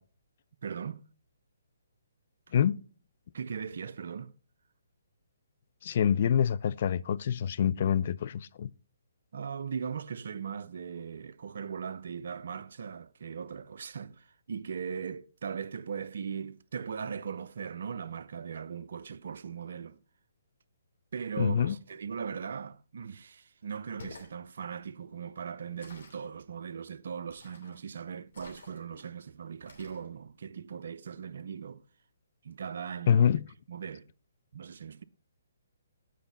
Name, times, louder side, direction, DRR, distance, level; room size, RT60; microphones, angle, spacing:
voice 1, 0.6-1.0 3.3-4.3 9.3-20.0 21.1-31.8 32.4-33.2 33.7-34.1 34.5-35.0, right 6 dB, 65° right, 0.5 m, -39 dB
voice 2, 5.8-8.7 21.4-21.8 33.1-33.4, left 8 dB, 50° left, 0.4 m, -26 dB
sound 1, 23.9-24.3 25.8-26.3 27.3-27.8 28.3-29.0 29.7-30.1, left 3 dB, 70° left, 2.9 m, -50 dB
9.1 x 5.0 x 5.3 m
hypercardioid pair, 140°, 0 cm